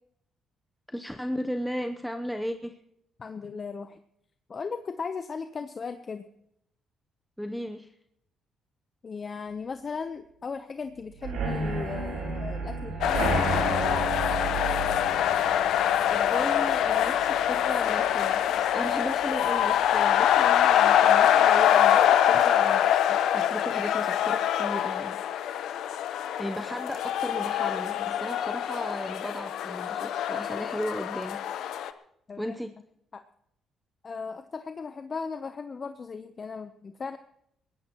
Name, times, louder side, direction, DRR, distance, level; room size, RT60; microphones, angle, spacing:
voice 1, 0.9-2.8 7.4-7.9 16.1-25.2 26.4-31.4 32.4-32.7, equal, ahead, 6 dB, 0.8 m, -35 dB
voice 2, 3.2-4.0 4.5-6.2 9.0-14.3 32.3-32.5 33.1-33.2 34.0-37.2, left 5 dB, 40° left, 9 dB, 0.8 m, -37 dB
sound 1, 11.2-18.8 19.2-19.6 19.8-19.9 20.3-20.4, right 4 dB, 80° right, 7.8 m, -33 dB
sound 2, 13.0-31.9, left 10 dB, 80° left, 0.8 m, -24 dB
21.0 x 17.0 x 3.0 m, 0.74 s
cardioid pair, 90°, 0 cm